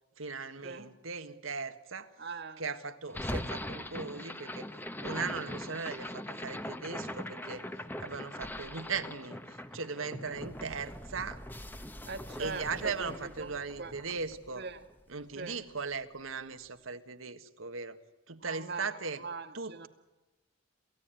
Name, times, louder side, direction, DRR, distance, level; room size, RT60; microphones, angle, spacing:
voice 1, 0.2-2.1 2.6-4.7 5.0-7.6 8.0-11.4 12.4-14.7 15.1-18.0 18.3-19.2 19.5-19.9, right 5 dB, 85° right, 9 dB, 1.6 m, -38 dB
voice 2, 2.2-2.6 12.1-13.9 14.6-14.8 15.3-15.6 18.4-18.9 19.2-19.9, right 4 dB, 55° right, 8 dB, 1.8 m, -41 dB
sound 1, 3.1-15.3, left 1 dB, 10° left, 1.0 m, -41 dB
28.0 x 16.0 x 9.1 m, 1.1 s
head